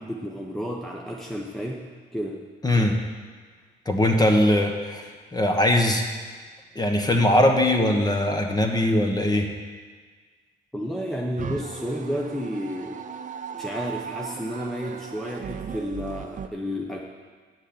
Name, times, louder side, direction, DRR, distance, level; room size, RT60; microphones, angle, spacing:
voice 1, 0.0-2.5 10.7-13.0 13.6-17.0, equal, ahead, -1 dB, 1.0 m, -31 dB
voice 2, 2.6-3.0 3.8-6.0 6.7-9.5, left 1 dB, 20° left, 3 dB, 1.4 m, -21 dB
sound 1, 11.4-16.5, right 7 dB, 40° right, 0.7 m, -37 dB
8.9 x 6.4 x 7.9 m, 1.5 s
cardioid pair, 90°, 20 cm